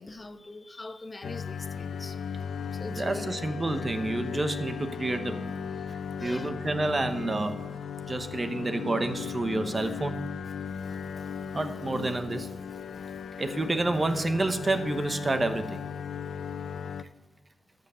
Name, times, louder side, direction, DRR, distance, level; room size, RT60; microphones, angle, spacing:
voice 1, 0.0-2.2 2.7-3.4 6.2-6.5 11.9-12.1, left 2 dB, 30° left, 9 dB, 0.9 m, -43 dB
sound 1, 1.2-17.0, left 7 dB, 90° left, 0.5 m, -37 dB
voice 2, 2.9-7.7 8.0-10.3 11.5-12.5 13.4-15.8, right 2 dB, 30° right, 9 dB, 1.0 m, -29 dB
13.0 x 6.7 x 6.8 m, 1.2 s
wide cardioid pair, 100°, 0 cm